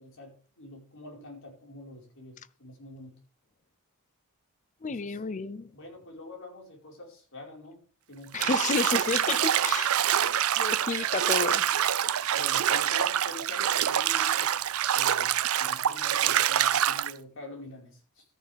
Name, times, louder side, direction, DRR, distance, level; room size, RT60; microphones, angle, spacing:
voice 1, 0.0-3.2 4.8-5.2 5.7-7.8 8.1-8.4 12.3-14.6 14.9-18.2, left 1 dB, 60° left, 4.8 m, -46 dB
voice 2, 4.8-5.7 8.3-9.9 10.6-11.7, left 4 dB, 35° left, 0.5 m, -31 dB
Bathtub (filling or washing), 8.3-17.1, right 10 dB, 70° right, 0.5 m, -26 dB
13.5 x 9.5 x 3.5 m
head